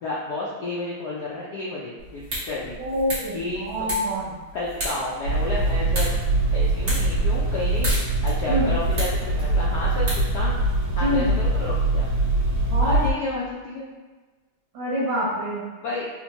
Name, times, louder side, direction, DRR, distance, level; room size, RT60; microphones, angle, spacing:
voice 1, 0.0-2.7 3.3-3.9 4.5-6.1 6.5-7.9 8.2-10.6 11.0-12.1 12.8-13.9 15.8-16.1, left 2 dB, 75° left, -6 dB, 0.9 m, -31 dB
sound 1, 2.0-10.8, right 1 dB, 45° right, 1.2 m, -34 dB
voice 2, 2.8-4.3 8.5-8.7 11.0-11.3 12.7-13.0 14.7-15.6, equal, 65° right, -7 dB, 1.6 m, -26 dB
sound 2, 5.2-13.1, right 2 dB, 85° right, 1.5 m, -23 dB
4.2 x 2.1 x 2.8 m, 1.3 s
omnidirectional pair, 2.4 m